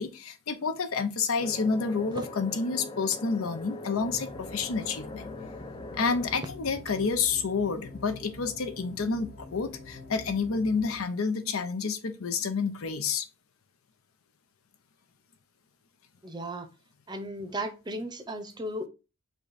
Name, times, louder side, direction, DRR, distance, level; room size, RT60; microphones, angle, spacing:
voice 1, 0.0-5.3 6.0-13.3, left 5 dB, 85° left, 0.7 m, -29 dB
sound 1, 1.4-6.4, left 2 dB, 20° left, 0.3 m, -42 dB
sound 2, 3.9-11.0, left 2 dB, 45° left, 0.9 m, -46 dB
voice 2, 16.2-16.7 17.1-18.9, right 1 dB, 20° right, 0.6 m, -35 dB
5.4 x 2.3 x 4.0 m
head